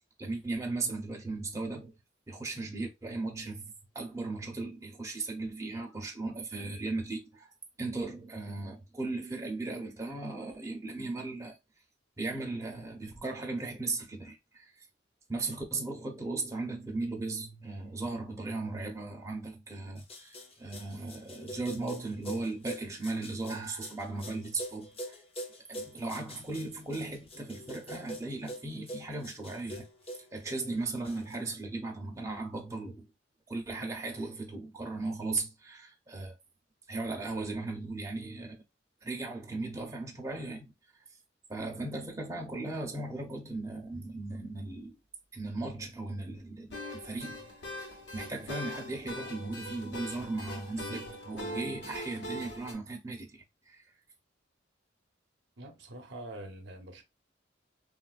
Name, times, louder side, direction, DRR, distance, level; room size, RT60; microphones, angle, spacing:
voice 1, 0.2-1.9 2.3-7.5 7.8-11.6 12.2-14.7 15.3-25.2 25.7-29.8 30.3-33.1 33.5-36.4 36.9-38.6 39.0-40.7 41.5-45.0 45.3-53.4 53.6-53.8, right 3 dB, 15° right, 0.6 m, -37 dB
sound 1, 20.0-31.4, equal, 30° left, 0.6 m, -44 dB
sound 2, 46.7-52.7, left 1 dB, 65° left, 1.0 m, -41 dB
voice 2, 55.6-57.0, right 1 dB, 65° right, 0.6 m, -45 dB
3.5 x 2.4 x 2.3 m
head